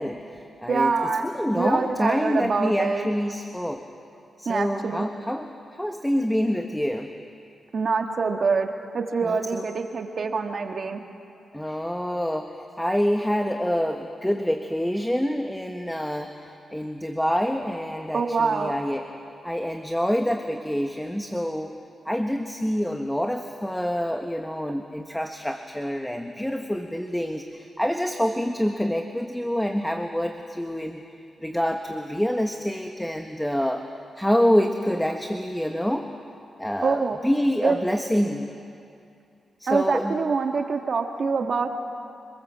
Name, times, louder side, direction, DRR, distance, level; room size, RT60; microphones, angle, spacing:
voice 1, 0.0-3.8 4.4-5.5 5.8-7.1 9.2-9.6 11.5-19.1 19.4-21.7 22.0-31.0 31.4-33.8 34.1-36.1 36.6-38.5 39.6-40.1 40.5-40.6, equal, 5° left, 5 dB, 1.4 m, -26 dB
voice 2, 0.7-1.2 1.6-3.1 4.4-5.0 7.7-11.0 18.1-18.7 36.8-37.2 37.6-37.8 39.7-41.7, right 4 dB, 60° right, 5 dB, 1.6 m, -25 dB
26.5 x 20.0 x 7.5 m, 2.5 s
cardioid pair, 55°, 0 cm